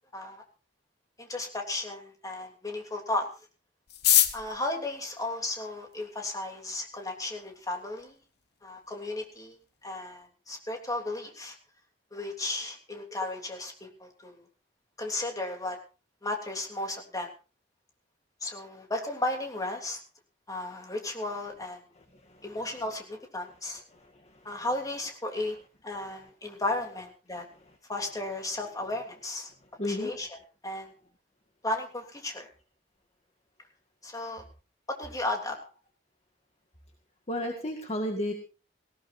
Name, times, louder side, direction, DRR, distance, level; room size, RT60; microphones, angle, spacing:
voice 1, 0.1-0.4 1.2-3.3 4.3-8.1 8.6-9.6 9.8-11.5 12.1-14.5 15.0-15.8 16.2-17.3 18.4-20.0 20.5-21.8 22.4-23.8 24.4-25.6 25.8-27.5 27.9-29.5 29.8-30.4 30.6-30.9 31.6-32.5 34.0-34.4 34.9-35.6, left 2 dB, 20° left, 2 dB, 3.1 m, -34 dB
sound 1, 3.9-6.1 6.9-7.0 7.2-7.3 7.6-8.1 8.4-8.5 8.7-9.1 9.4-9.6 10.0-10.3, left 11 dB, 65° left, 1.2 m, -26 dB
voice 2, 23.9-24.4 29.8-30.1 37.3-38.3, left 1 dB, 35° left, 3 dB, 1.8 m, -33 dB
18.5 x 18.0 x 2.7 m, 0.33 s
head